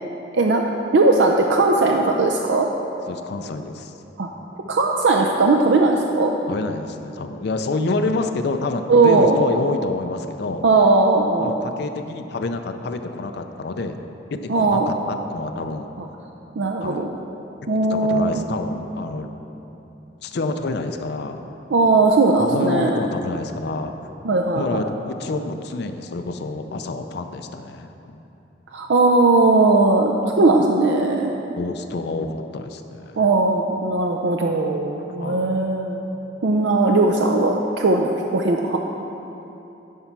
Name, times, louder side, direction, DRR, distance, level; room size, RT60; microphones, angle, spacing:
voice 1, 0.9-2.7 4.2-4.3 4.7-6.3 8.9-9.4 10.6-11.5 14.5-14.9 16.6-17.1 17.7-18.4 21.7-23.0 24.2-24.9 28.7-31.3 33.2-36.1 36.4-38.8, right 3 dB, 75° right, 1 dB, 0.5 m, -18 dB
voice 2, 3.1-4.0 6.5-10.7 11.4-14.0 14.3-15.9 16.8-17.1 17.9-19.3 20.2-21.5 22.4-23.9 24.5-28.2 30.4-30.5 31.6-33.3 35.2-35.5, left 3 dB, 65° left, 6 dB, 0.5 m, -28 dB
11.0 x 4.4 x 5.9 m, 3.0 s
head